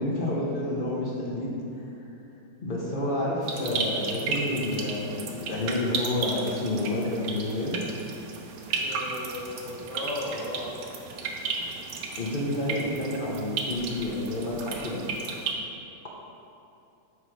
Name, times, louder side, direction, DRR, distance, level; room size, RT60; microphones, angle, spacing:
voice 1, 0.0-1.5 2.6-7.8 12.2-15.0, left 1 dB, 45° left, -4 dB, 0.7 m, -29 dB
sound 1, 3.4-15.5, right 4 dB, 70° right, 1.1 m, -34 dB
voice 2, 8.8-10.8, left 1 dB, 70° left, -4 dB, 0.4 m, -36 dB
8.0 x 3.2 x 5.0 m, 2.7 s
omnidirectional pair, 2.1 m